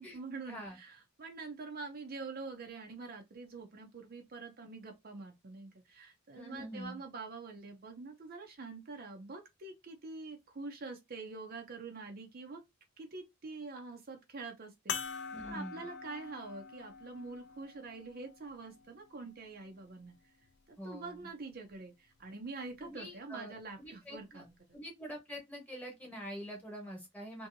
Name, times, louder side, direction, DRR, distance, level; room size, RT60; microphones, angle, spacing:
voice 1, 0.0-12.6 13.0-20.3 20.7-24.5, right 3 dB, 45° right, 0.5 m, -46 dB
voice 2, 6.3-7.0 15.3-15.8 20.8-21.3 22.8-24.5 24.7-27.5, equal, 5° left, 1.1 m, -45 dB
sound 1, 14.9-19.7 20.5-20.6 22.7-22.8, left 7 dB, 50° left, 0.4 m, -44 dB
2.7 x 2.6 x 2.6 m
head